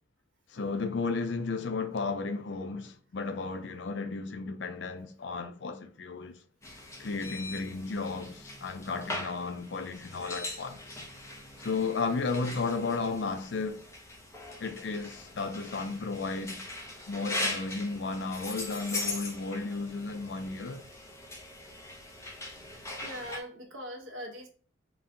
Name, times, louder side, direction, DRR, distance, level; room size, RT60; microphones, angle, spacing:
voice 1, 0.5-6.4 7.0-10.8 11.6-13.8 14.6-16.6 17.1-20.8, left 4 dB, 60° left, 0.4 m, -34 dB
sound 1, 6.6-23.4, left 2 dB, 15° left, 0.6 m, -40 dB
voice 2, 23.0-24.5, equal, 75° right, 0.9 m, -41 dB
4.0 x 2.2 x 3.7 m
head